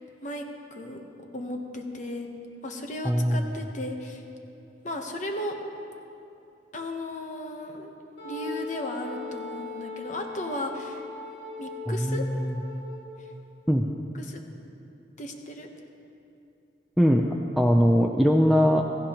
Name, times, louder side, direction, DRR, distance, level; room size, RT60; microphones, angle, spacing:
voice 1, 0.2-1.0 1.3-2.3 2.6-4.2 4.8-5.6 6.7-7.9 8.2-11.0 11.6-12.3 14.1-14.4 15.2-15.7, left 1 dB, 45° left, 3 dB, 1.0 m, -35 dB
voice 2, 3.0-3.5 11.9-12.6 13.7-13.9 17.0-17.2 17.6-18.8, equal, ahead, 1 dB, 0.4 m, -21 dB
Wind instrument woodwind instrument, 8.2-13.3, left 2 dB, 65° left, 2.1 m, -39 dB
16.0 x 15.0 x 3.0 m, 2.7 s
head